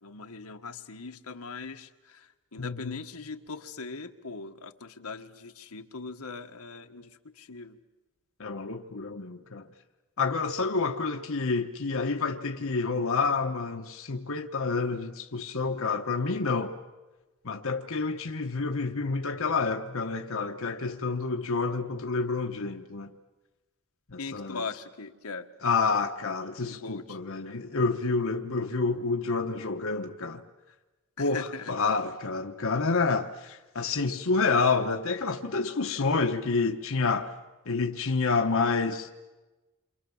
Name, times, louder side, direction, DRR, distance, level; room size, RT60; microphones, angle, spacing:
voice 1, 0.0-7.8 24.2-25.5 26.7-27.2 31.2-31.7 35.9-36.0, left 4 dB, 85° left, 1.5 m, -40 dB
voice 2, 2.6-3.0 8.4-9.7 10.2-16.7 17.4-23.1 24.1-24.6 25.6-30.4 31.2-37.3 37.7-39.1, left 4 dB, 65° left, 1.2 m, -28 dB
29.0 x 26.0 x 7.2 m
head